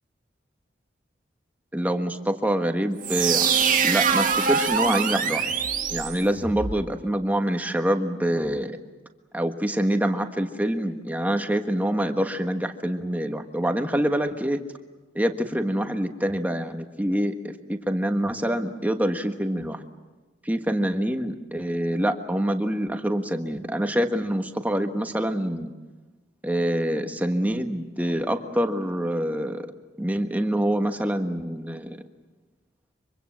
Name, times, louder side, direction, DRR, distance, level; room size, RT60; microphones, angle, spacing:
voice 1, 1.7-3.5 3.8-5.5 5.9-8.7 9.3-14.6 15.1-19.8 20.4-25.7 26.4-29.7 30.0-32.0, right 1 dB, 10° right, 6 dB, 1.4 m, -26 dB
sound 1, 3.0-6.8, right 6 dB, 50° right, 2.1 m, -24 dB
24.5 x 24.0 x 7.6 m, 1.2 s
head